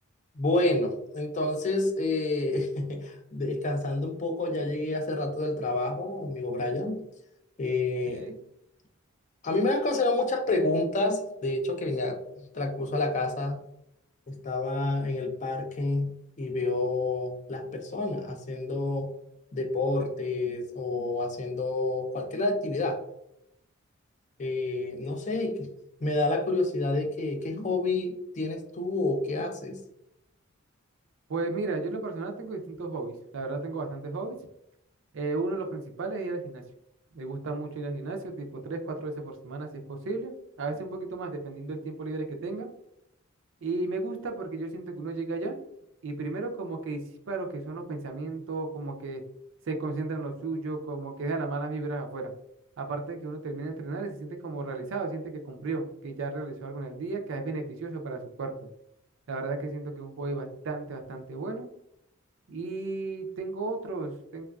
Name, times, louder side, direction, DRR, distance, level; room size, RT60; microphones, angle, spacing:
voice 1, 0.4-7.0 7.6-8.3 9.4-13.6 14.3-19.1 19.5-23.0 24.4-25.7 26.0-29.8, left 2 dB, 35° left, 5 dB, 0.4 m, -29 dB
voice 2, 8.1-8.4 31.3-34.4 35.1-36.6 37.1-42.7 43.6-45.6 46.0-49.2 49.7-52.3 52.8-58.5 59.3-61.7 62.5-64.5, right 3 dB, 60° right, 4 dB, 0.4 m, -34 dB
3.0 x 2.4 x 2.3 m, 0.80 s
head